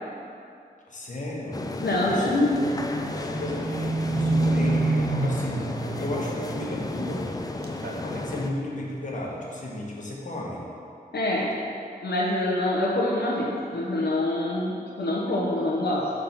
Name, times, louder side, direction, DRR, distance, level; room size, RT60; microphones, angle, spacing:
voice 1, 0.9-1.7 2.1-2.3 3.1-7.3 8.0-10.7, left 1 dB, 50° left, -4 dB, 1.1 m, -34 dB
sound 1, 1.5-8.5, left 2 dB, 20° left, 0.4 m, -33 dB
voice 2, 1.8-2.6 11.1-11.5 12.0-16.1, left 1 dB, 80° left, -5 dB, 0.8 m, -25 dB
Livestock farm animals working animals, 2.6-7.4 7.6-8.3 8.8-8.9, right 2 dB, 75° right, 0.7 m, -28 dB
5.9 x 3.6 x 5.3 m, 2.5 s
wide cardioid pair, 95°, 17 cm